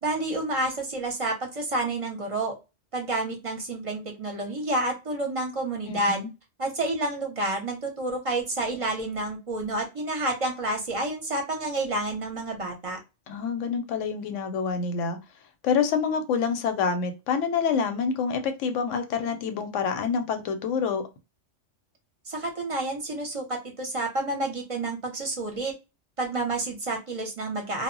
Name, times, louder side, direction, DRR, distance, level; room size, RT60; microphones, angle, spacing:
voice 1, 0.0-2.5 2.9-6.2 6.6-13.0 22.3-25.7 26.2-27.8, right 2 dB, 35° right, 0.6 m, -29 dB
voice 2, 5.9-6.3 13.3-15.2 15.6-21.0, left 6 dB, 85° left, 0.9 m, -27 dB
2.1 x 2.0 x 3.7 m
omnidirectional pair, 1.2 m